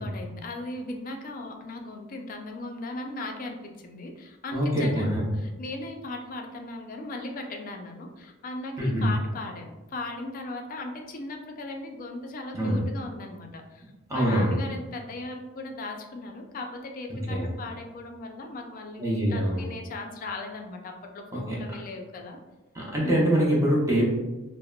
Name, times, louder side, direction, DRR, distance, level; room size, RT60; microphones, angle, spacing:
voice 1, 0.0-13.9 14.1-22.4 23.0-23.3, left 2 dB, 45° left, 4 dB, 0.4 m, -38 dB
voice 2, 4.5-5.2 8.8-9.0 12.5-12.8 14.1-14.5 17.1-17.5 19.0-19.6 21.3-21.6 22.7-24.1, equal, 15° right, -4 dB, 0.7 m, -24 dB
3.5 x 2.0 x 2.2 m, 1.1 s
head